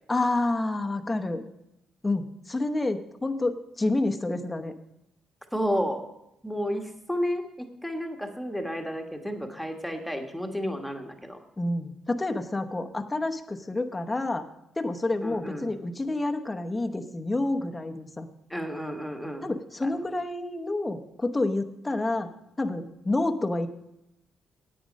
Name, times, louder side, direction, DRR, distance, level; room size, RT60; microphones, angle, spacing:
voice 1, 0.1-1.4 2.0-4.7 11.6-14.5 14.8-18.3 19.4-22.3 22.6-23.7, left 2 dB, 20° left, 6 dB, 0.9 m, -28 dB
voice 2, 5.5-6.1 6.4-11.4 15.2-15.7 18.5-19.5 19.8-19.9, equal, ahead, 4 dB, 1.5 m, -31 dB
10.0 x 8.7 x 5.3 m, 0.84 s
cardioid pair, 90°, 0 cm